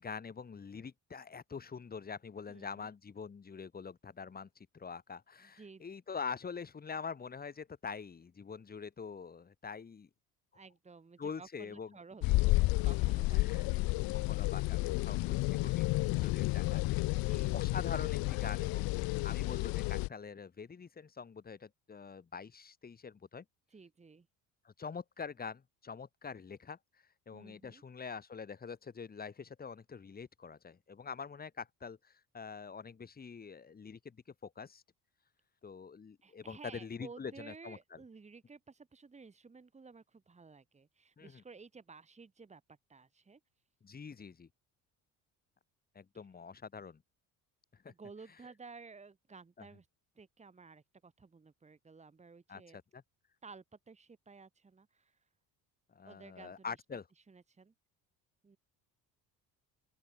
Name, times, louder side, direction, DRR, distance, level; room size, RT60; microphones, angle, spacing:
voice 1, 0.0-10.1 11.2-12.0 13.3-13.7 14.1-16.8 17.5-18.9 19.2-23.4 24.6-34.8 35.6-38.0 41.2-41.4 43.8-44.5 45.9-47.0 47.8-47.9 49.6-49.7 52.5-53.0 55.9-57.0, left 5 dB, 25° left, 2.9 m, -45 dB
voice 2, 2.5-2.9 5.4-5.8 10.5-13.8 17.1-17.8 23.7-24.3 27.3-27.8 36.2-42.6 42.9-43.4 47.9-49.9 50.2-52.8 53.4-55.2 56.0-56.8 57.3-57.7 58.4-58.6, right 4 dB, 20° right, 3.5 m, -54 dB
sound 1, 12.2-20.1, left 21 dB, 70° left, 0.8 m, -31 dB
open air
cardioid pair, 135°, 36 cm